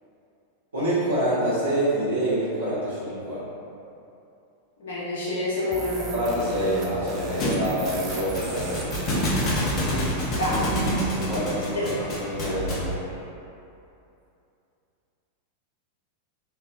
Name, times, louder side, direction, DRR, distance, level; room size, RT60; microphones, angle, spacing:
voice 1, 0.7-3.4 6.1-9.1 11.1-12.9, right 1 dB, 70° right, -11 dB, 1.4 m, -27 dB
voice 2, 4.8-6.1 10.3-10.7 11.7-11.8, left 1 dB, 65° left, -8 dB, 1.0 m, -27 dB
sound 1, 5.7-10.9, right 2 dB, 30° right, 0.5 m, -36 dB
sound 2, 7.1-9.7 10.7-13.3, equal, 5° left, 1.1 m, -43 dB
Thump thud, 7.4-13.0, equal, 35° left, 0.7 m, -27 dB
3.2 x 3.0 x 2.5 m, 2.7 s
figure-of-eight pair, 90°, 0 cm